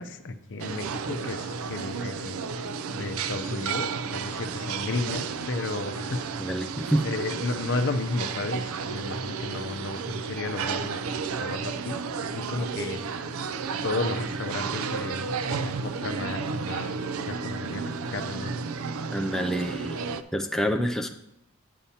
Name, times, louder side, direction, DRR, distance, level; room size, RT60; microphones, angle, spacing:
voice 1, 0.0-2.4 2.9-6.3 7.0-11.0 11.4-12.0 12.3-13.3 13.8-18.6, left 3 dB, 60° left, 8 dB, 0.6 m, -33 dB
sound 1, 0.6-20.2, right 5 dB, 75° right, 0.4 m, -32 dB
voice 2, 6.4-7.1 19.1-20.0 20.3-21.1, equal, ahead, 3 dB, 0.4 m, -27 dB
9.2 x 8.4 x 2.8 m, 0.80 s
head